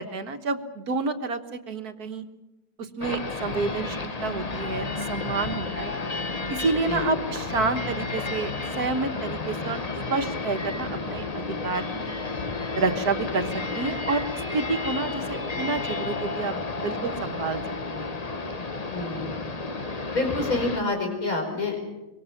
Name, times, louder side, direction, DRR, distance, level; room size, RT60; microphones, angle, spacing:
voice 1, 0.0-2.2 3.0-6.0 6.5-8.5 8.8-9.8 10.1-12.2 12.7-13.5 13.7-14.2 14.5-17.6 17.9-18.2, right 4 dB, 70° right, 7 dB, 1.9 m, -29 dB
sound 1, 3.0-20.8, left 3 dB, 25° left, 1.1 m, -32 dB
voice 2, 18.9-19.6 20.1-21.8, left 2 dB, 60° left, 3 dB, 5.2 m, -28 dB
25.0 x 23.5 x 5.9 m, 1.0 s
omnidirectional pair, 1.7 m